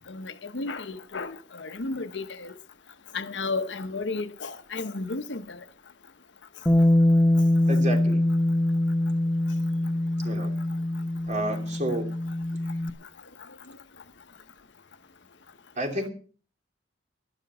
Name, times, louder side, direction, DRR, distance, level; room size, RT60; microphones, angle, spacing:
voice 1, 0.1-2.6 3.1-5.6, left 3 dB, 80° left, 1.0 m, -33 dB
Bass guitar, 6.7-12.9, left 1 dB, 10° left, 0.9 m, -23 dB
voice 2, 7.7-8.2 10.2-10.5 11.3-12.1 15.8-16.1, right 1 dB, 40° right, 3.0 m, -30 dB
12.0 x 11.5 x 6.1 m
head